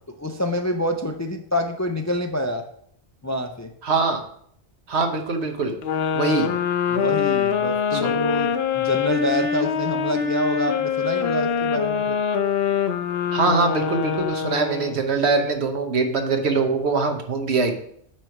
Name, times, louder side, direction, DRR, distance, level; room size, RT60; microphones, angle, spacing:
voice 1, 0.2-2.6 3.2-3.7 6.9-12.2, left 1 dB, 30° left, 5 dB, 0.3 m, -27 dB
voice 2, 3.8-4.2 4.9-5.7 6.1-6.5 7.9-8.1 13.3-17.7, right 4 dB, 85° right, 5 dB, 1.3 m, -22 dB
sound 1, 5.8-15.0, left 7 dB, 75° left, 0.9 m, -24 dB
8.6 x 3.2 x 5.8 m, 0.67 s
omnidirectional pair, 1.1 m